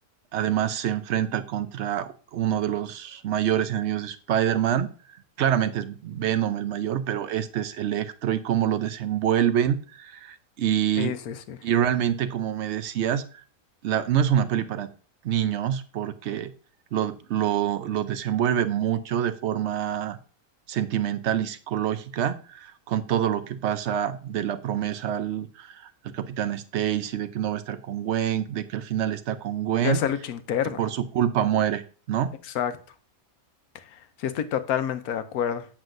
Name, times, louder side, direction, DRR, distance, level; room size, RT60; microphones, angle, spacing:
voice 1, 0.3-4.9 5.4-11.2 11.6-13.4 13.8-14.9 15.2-16.5 16.9-20.2 20.7-30.0 30.8-31.8 32.1-32.3, right 10 dB, 60° right, 0.8 m, -26 dB
voice 2, 11.0-11.6 29.8-30.8 32.4-32.7 33.7-35.7, left 9 dB, 80° left, 1.2 m, -28 dB
7.7 x 7.1 x 2.5 m
omnidirectional pair, 1.6 m